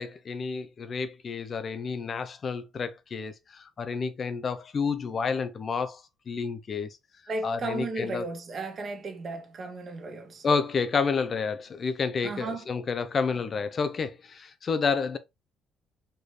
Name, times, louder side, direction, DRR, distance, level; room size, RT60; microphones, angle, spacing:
voice 1, 0.0-6.0 6.3-6.9 7.4-8.2 10.4-15.2, left 5 dB, 45° left, 0.6 m, -30 dB
voice 2, 7.3-10.4 12.2-12.6, right 3 dB, 45° right, 1.4 m, -35 dB
4.5 x 3.1 x 3.2 m
cardioid pair, 90°, 0 cm